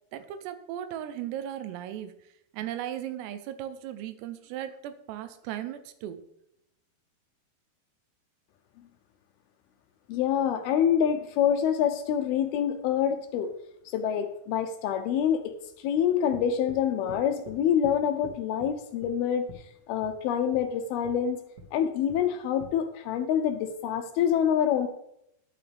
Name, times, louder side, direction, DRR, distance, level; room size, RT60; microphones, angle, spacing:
voice 1, 0.1-2.1 2.5-6.2, right 11 dB, 85° right, 10 dB, 2.9 m, -37 dB
voice 2, 10.1-13.5 13.9-19.5 19.9-21.4 21.7-24.9, left 9 dB, 80° left, 7 dB, 2.4 m, -26 dB
sound 1, 16.3-16.8 17.1-17.6 17.8-18.0 18.2-18.7 19.0-19.2 19.5-19.6 20.0-20.1 20.5-20.6 21.0-21.1 21.6-21.7 22.1-22.2 22.6-22.7, right 1 dB, 45° right, 1.3 m, -44 dB
11.5 x 9.5 x 3.4 m, 0.79 s
omnidirectional pair, 4.7 m